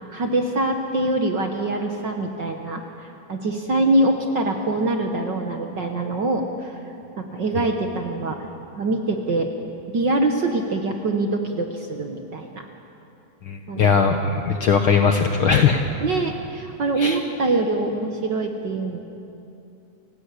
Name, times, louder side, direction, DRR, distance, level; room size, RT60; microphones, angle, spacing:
voice 1, 0.1-6.7 7.2-8.4 8.7-9.5 9.9-12.6 13.7-13.9 14.5-14.7 15.4-15.7 16.0-19.0, right 2 dB, 50° right, 3 dB, 1.5 m, -24 dB
voice 2, 13.5-15.8 17.0-17.2, left 6 dB, 65° left, 5 dB, 1.4 m, -19 dB
29.5 x 16.5 x 8.4 m, 2.8 s
omnidirectional pair, 3.4 m